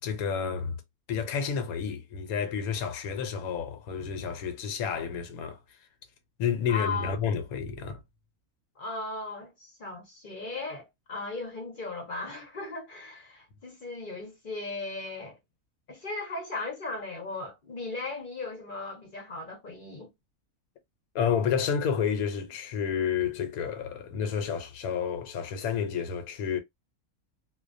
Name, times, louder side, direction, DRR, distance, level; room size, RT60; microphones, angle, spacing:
voice 1, 0.0-0.8 1.1-5.8 6.4-8.0 21.1-26.6, left 7 dB, 80° left, 1.1 m, -30 dB
voice 2, 6.7-7.2 8.8-15.4 15.9-20.1, left 3 dB, 45° left, 0.8 m, -37 dB
2.3 x 2.2 x 2.4 m
omnidirectional pair, 1.5 m